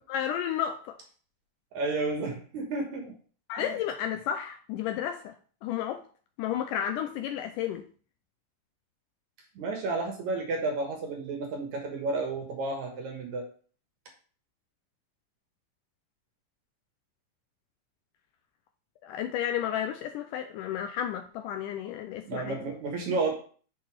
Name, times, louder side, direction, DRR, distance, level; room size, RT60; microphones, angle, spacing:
voice 1, 0.1-1.0 3.5-5.4 5.6-6.0 6.4-7.9 19.0-22.6, left 10 dB, 80° left, 1.9 m, -32 dB
voice 2, 1.7-3.1 3.6-3.7 9.6-13.5 22.2-23.4, right 3 dB, 65° right, 2.3 m, -31 dB
6.6 x 4.2 x 4.6 m
omnidirectional pair, 4.0 m